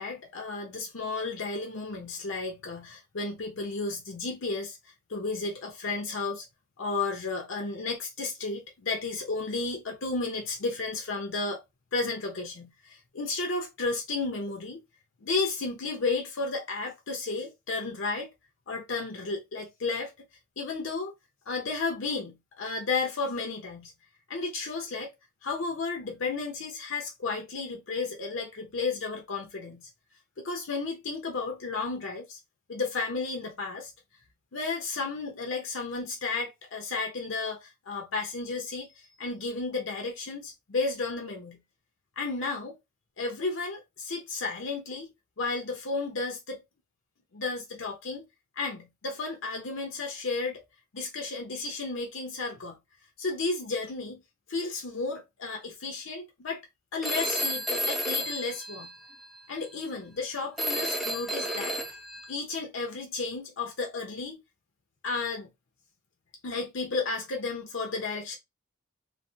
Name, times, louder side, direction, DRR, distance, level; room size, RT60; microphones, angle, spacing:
voice 1, 0.0-4.8 5.1-6.5 6.8-11.6 11.9-14.8 15.2-18.3 18.7-20.3 20.6-21.1 21.5-23.9 24.3-25.1 25.4-29.9 30.4-32.4 32.7-33.9 34.5-41.6 42.2-42.8 43.2-45.1 45.4-46.6 47.3-48.3 48.6-50.6 50.9-52.8 53.2-54.2 54.5-56.6 56.9-58.9 59.5-61.8 62.3-64.4 65.0-65.5 66.4-68.4, left 3 dB, 75° left, 0.7 m, -33 dB
Telephone, 57.0-59.4 60.6-62.3, equal, ahead, 0.3 m, -32 dB
3.1 x 2.0 x 2.6 m
head